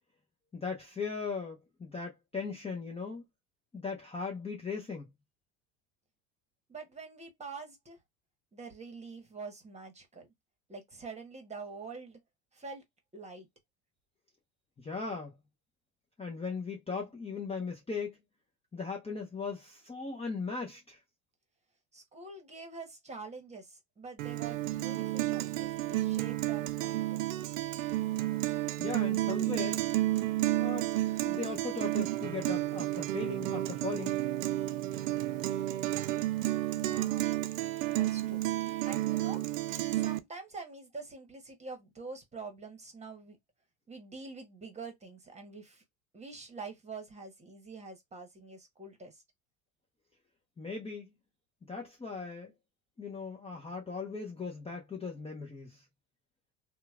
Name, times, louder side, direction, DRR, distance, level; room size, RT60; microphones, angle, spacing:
voice 1, 0.5-3.2 3.7-5.1 14.8-15.3 16.2-18.2 18.7-21.0 28.8-29.8 30.6-30.9 31.2-34.2 50.6-51.1 51.7-52.5 53.0-55.8, left 4 dB, 15° left, 0.7 m, -38 dB
voice 2, 6.7-8.0 8.5-10.3 10.7-12.2 12.5-12.8 13.1-13.5 21.9-27.3 36.7-37.3 37.9-38.4 38.9-39.4 39.9-43.4 43.9-45.8 46.1-49.2, right 4 dB, 15° right, 1.3 m, -46 dB
Guitar, 24.2-40.2, right 16 dB, 80° right, 0.5 m, -31 dB
2.9 x 2.3 x 2.4 m
hypercardioid pair, 85°, 38 cm